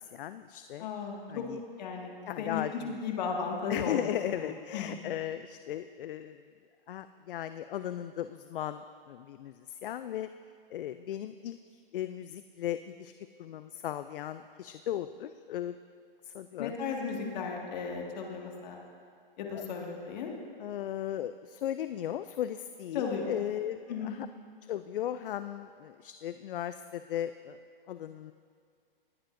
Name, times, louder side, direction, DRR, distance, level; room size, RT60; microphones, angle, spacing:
voice 1, 0.0-0.9 1.3-1.6 2.3-3.0 3.7-6.5 6.9-10.3 10.7-11.6 11.9-13.1 13.4-15.8 16.3-16.7 19.5-19.7 20.6-24.3 24.7-27.6 27.9-28.3, left 11 dB, 65° left, 11 dB, 0.4 m, -36 dB
voice 2, 0.8-1.5 1.8-2.1 2.4-4.0 4.4-4.9 16.6-18.8 19.4-20.3 22.9-23.3 23.9-24.2, left 5 dB, 50° left, 0 dB, 1.9 m, -35 dB
19.5 x 10.0 x 2.6 m, 2.2 s
hypercardioid pair, 155°, 29 cm